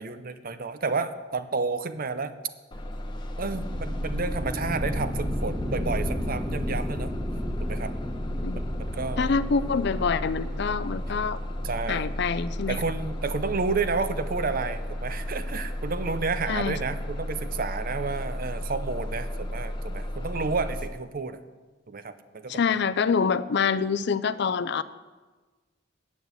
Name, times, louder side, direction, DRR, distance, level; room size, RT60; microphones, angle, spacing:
voice 1, 0.0-2.3 3.4-7.1 7.6-7.9 8.6-8.7 8.9-9.3 11.6-12.0 12.7-21.4 21.9-22.6, right 4 dB, 50° right, 11 dB, 0.7 m, -31 dB
Bus, 2.7-20.9, equal, 25° left, 0.8 m, -34 dB
sound 1, 3.5-15.0, equal, 5° right, 1.5 m, -35 dB
voice 2, 9.2-11.4 11.9-12.8 16.5-16.8 22.5-24.8, left 5 dB, 60° left, 13 dB, 0.5 m, -26 dB
9.1 x 8.3 x 8.0 m, 1.3 s
head